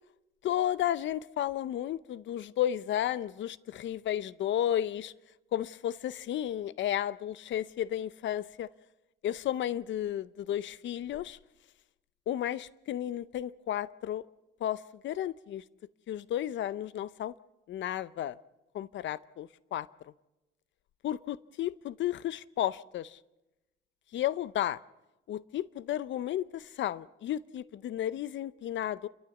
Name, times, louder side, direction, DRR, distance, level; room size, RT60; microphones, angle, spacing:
voice 1, 0.4-5.1 5.5-8.7 9.2-11.4 12.3-14.3 14.6-15.6 16.1-17.3 17.7-18.4 18.7-19.9 21.0-23.2 24.1-24.8 25.3-29.1, left 11 dB, 70° left, 19 dB, 0.7 m, -33 dB
29.0 x 13.0 x 7.1 m, 0.99 s
cardioid pair, 90°, 20 cm